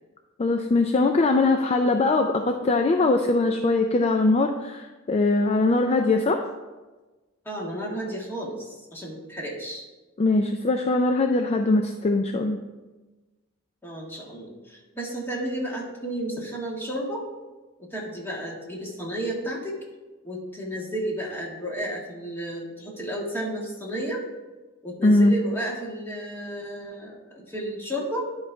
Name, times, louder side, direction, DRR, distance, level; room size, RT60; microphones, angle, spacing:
voice 1, 0.4-6.5 10.2-12.6 25.0-25.3, left 2 dB, 30° left, 5 dB, 0.4 m, -21 dB
voice 2, 7.4-9.9 13.8-17.2 17.8-19.7 20.2-24.2 24.8-28.3, right 1 dB, 10° left, -4 dB, 1.5 m, -32 dB
10.5 x 3.9 x 4.5 m, 1.2 s
head